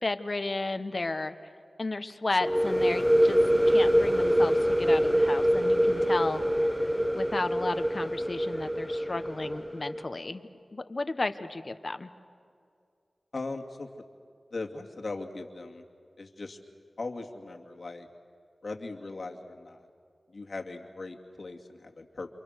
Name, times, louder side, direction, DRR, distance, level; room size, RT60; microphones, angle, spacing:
voice 1, 0.0-1.3 1.8-3.4 3.7-6.4 7.1-12.1, left 2 dB, 50° left, 9 dB, 1.4 m, -33 dB
sound 1, 2.4-10.0, equal, 5° right, 1.3 m, -25 dB
voice 2, 13.3-13.9 14.5-15.8 16.2-16.6 17.0-18.1 18.6-19.9 20.3-22.3, left 3 dB, 70° left, 2 dB, 2.5 m, -39 dB
28.5 x 28.0 x 6.6 m, 2.3 s
cardioid pair, 40°, 0 cm